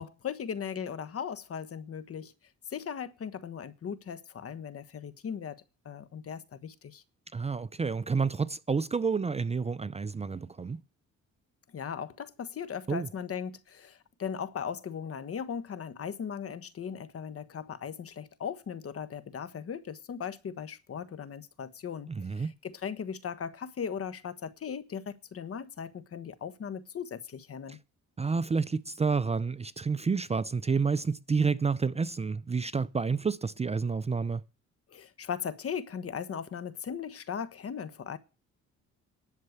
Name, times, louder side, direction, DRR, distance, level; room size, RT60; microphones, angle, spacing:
voice 1, 0.0-2.3 2.7-7.0 11.7-27.8 34.9-38.2, left 7 dB, 50° left, 1.4 m, -38 dB
voice 2, 7.3-10.8 12.9-13.1 22.1-22.5 27.7-27.8 28.2-34.4, right 5 dB, 20° right, 0.5 m, -29 dB
11.0 x 6.7 x 8.0 m
cardioid pair, 90°, 30 cm